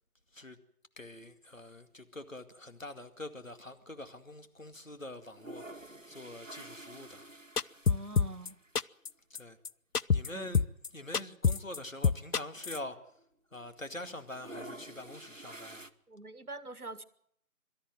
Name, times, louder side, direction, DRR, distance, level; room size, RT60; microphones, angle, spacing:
voice 1, 1.0-7.3 9.3-9.6 10.1-10.6 10.9-13.0 13.5-15.9, left 1 dB, 60° left, 2.3 m, -45 dB
sound 1, 5.2-8.7 9.1-9.2 9.4-9.5 10.4-10.6 11.1-11.2 11.3-13.2 13.5-13.9 14.2-15.9, right 1 dB, 55° right, 1.1 m, -49 dB
sound 2, 7.6-8.5 8.8-9.1 9.3-9.4 9.6-9.7 9.9-10.3 10.5-10.9 11.1-11.8 12.0-12.8, left 5 dB, 80° left, 0.7 m, -26 dB
voice 2, 7.9-8.6 10.3-10.6 16.1-17.0, right 2 dB, 75° right, 1.6 m, -44 dB
23.5 x 13.5 x 9.2 m
figure-of-eight pair, 175°, 45 cm